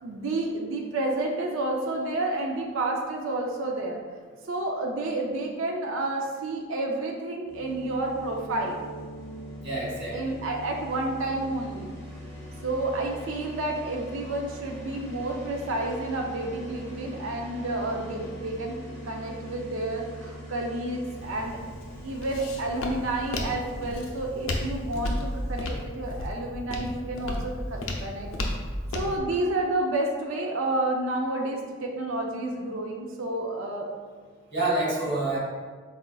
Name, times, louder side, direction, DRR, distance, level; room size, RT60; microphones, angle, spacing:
voice 1, 0.0-4.0 4.5-8.8 10.1-11.9 12.6-18.8 19.0-21.6 22.0-28.3 28.9-33.9, right 2 dB, 75° right, 1 dB, 0.5 m, -30 dB
sound 1, 7.5-25.7, equal, 10° left, 1.1 m, -42 dB
voice 2, 9.6-10.4 34.5-35.4, right 2 dB, 55° right, -6 dB, 1.2 m, -27 dB
Walk footsteps, 21.1-29.2, left 1 dB, 80° left, 0.5 m, -33 dB
4.1 x 3.9 x 2.3 m, 1.5 s
head